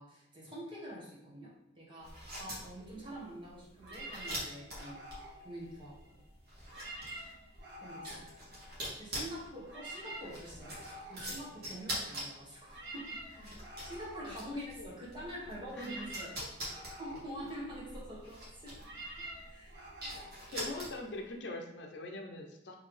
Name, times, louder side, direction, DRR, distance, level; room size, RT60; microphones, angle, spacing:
voice 1, 0.0-5.0 5.4-6.2 7.7-8.3 8.5-10.7 11.1-16.3 17.0-18.8 19.2-19.8, equal, 25° right, -5 dB, 1.3 m, -46 dB
sound 1, 2.0-21.2, equal, 55° right, 1.5 m, -45 dB
sound 2, 3.8-6.2 6.6-9.1 9.4-21.3, right 1 dB, 75° right, 1.2 m, -49 dB
voice 2, 14.2-14.9 15.7-16.0 20.5-22.8, left 2 dB, 70° left, 3 dB, 0.6 m, -43 dB
4.1 x 3.3 x 3.2 m, 0.88 s
head